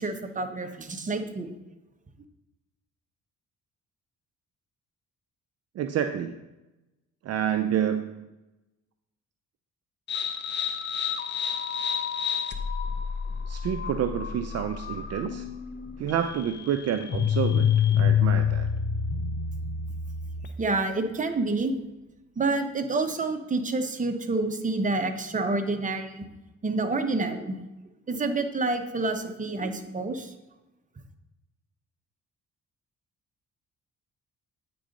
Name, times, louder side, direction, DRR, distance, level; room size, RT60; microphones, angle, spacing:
voice 1, 0.0-1.5 20.6-21.7 22.4-26.2 26.6-27.6 28.1-30.3, right 3 dB, 25° right, 6 dB, 0.9 m, -28 dB
voice 2, 5.7-6.4 7.2-8.3 13.5-15.5 16.0-18.7, right 9 dB, 55° right, 8 dB, 0.5 m, -29 dB
sound 1, 10.1-20.7, left 7 dB, 35° left, 0.7 m, -28 dB
8.6 x 3.8 x 5.2 m, 1.0 s
cardioid pair, 90°, 30 cm